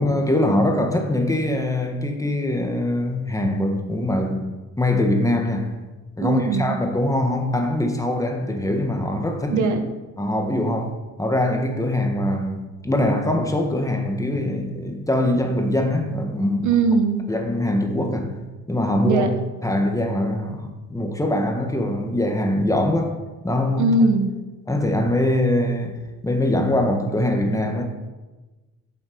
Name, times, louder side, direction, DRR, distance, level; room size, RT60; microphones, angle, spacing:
voice 1, 0.0-4.5 4.8-5.7 6.2-9.7 10.2-10.9 11.2-16.7 17.3-18.4 18.7-19.2 19.6-23.1 23.4-23.9 24.7-27.8, left 1 dB, 10° left, 3 dB, 1.5 m, -22 dB
voice 2, 6.2-6.8 9.5-9.9 16.6-17.3 19.0-19.4 23.8-24.3, right 3 dB, 75° right, 7 dB, 1.1 m, -20 dB
8.8 x 7.3 x 5.1 m, 1.2 s
cardioid pair, 90°, 30 cm